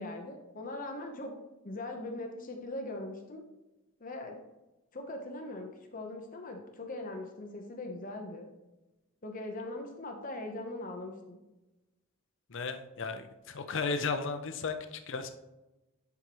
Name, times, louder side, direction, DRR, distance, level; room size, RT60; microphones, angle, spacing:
voice 1, 0.0-1.3 1.6-3.4 4.0-4.4 4.9-8.5 9.2-11.4, left 2 dB, 40° left, 3 dB, 0.9 m, -40 dB
voice 2, 12.5-15.3, left 4 dB, 60° left, 8 dB, 0.6 m, -35 dB
10.5 x 4.8 x 3.0 m, 1.0 s
head